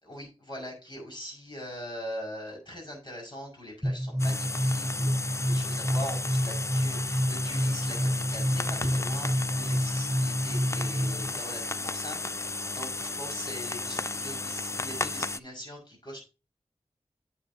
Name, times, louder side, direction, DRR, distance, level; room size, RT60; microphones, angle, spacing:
voice 1, 0.0-16.2, equal, 40° left, -1 dB, 5.6 m, -42 dB
sound 1, 3.8-11.4, equal, 5° right, 1.3 m, -29 dB
sound 2, 4.2-15.4, left 3 dB, 25° left, 0.4 m, -34 dB
8.9 x 8.3 x 2.8 m, 0.31 s
cardioid pair, 45°, 12 cm